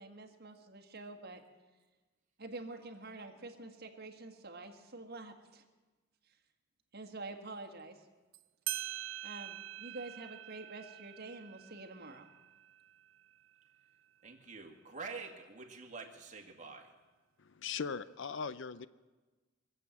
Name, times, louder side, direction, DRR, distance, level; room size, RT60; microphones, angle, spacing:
voice 1, 0.0-1.4 2.4-5.6 6.9-8.0 9.2-12.3, right 2 dB, 55° right, 4 dB, 1.7 m, -47 dB
sound 1, 8.3-8.4 8.7-13.8, right 14 dB, 75° right, 0.5 m, -45 dB
voice 2, 14.2-16.9, right 4 dB, 40° right, 2 dB, 2.0 m, -47 dB
voice 3, 17.4-18.9, left 6 dB, 65° left, 16 dB, 0.6 m, -39 dB
24.0 x 8.1 x 7.4 m, 1.3 s
head